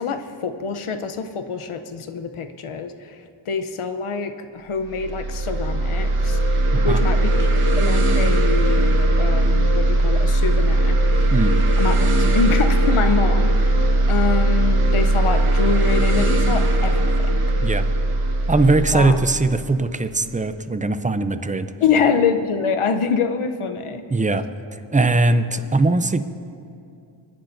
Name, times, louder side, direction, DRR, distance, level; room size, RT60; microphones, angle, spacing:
voice 1, 0.0-3.2 3.5-6.4 6.8-11.0 11.8-17.4 18.9-19.2 21.8-24.0, left 5 dB, 85° left, 7 dB, 0.8 m, -25 dB
sound 1, 4.8-20.3, right 1 dB, 90° right, 1.2 m, -19 dB
voice 2, 6.7-7.0 11.3-11.6 17.6-17.8 18.5-21.7 24.1-24.4 24.9-26.2, right 2 dB, 15° right, 10 dB, 0.6 m, -20 dB
26.0 x 10.0 x 2.6 m, 2.5 s
wide cardioid pair, 70°, 49 cm